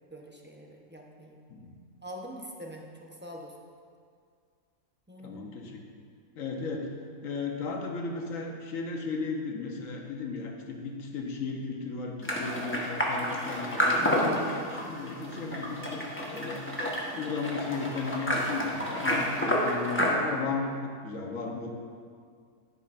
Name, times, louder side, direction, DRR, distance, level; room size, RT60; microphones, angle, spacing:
voice 1, 0.1-1.4 2.0-3.5 5.1-5.4, equal, 10° right, -1 dB, 0.7 m, -44 dB
voice 2, 5.2-5.8 6.3-6.9 7.2-16.6 17.1-21.7, left 4 dB, 70° left, 1 dB, 1.4 m, -35 dB
sound 1, 12.2-20.1, equal, 10° left, 1.0 m, -30 dB
11.0 x 10.0 x 2.5 m, 2.1 s
omnidirectional pair, 1.5 m